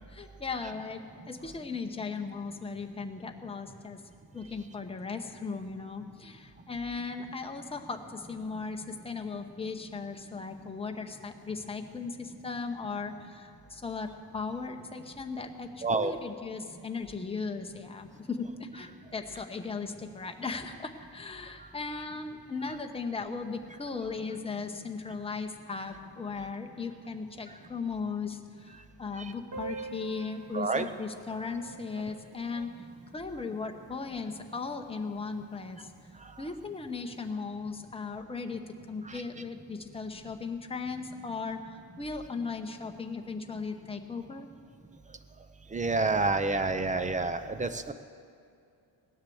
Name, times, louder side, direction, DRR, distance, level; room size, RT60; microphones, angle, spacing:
voice 1, 0.1-4.0 4.3-32.9 33.1-35.9 36.4-44.5, left 4 dB, 15° left, 4 dB, 0.9 m, -37 dB
voice 2, 15.8-16.1 30.5-30.8 39.0-39.1 45.7-47.9, right 3 dB, 20° right, 9 dB, 0.6 m, -28 dB
Piano, 29.5-34.9 35.1-35.2 35.4-35.6 35.9-36.0 36.8-37.0, right 4 dB, 40° right, 2.1 m, -46 dB
17.0 x 10.5 x 7.8 m, 2.5 s
wide cardioid pair, 155°, 42 cm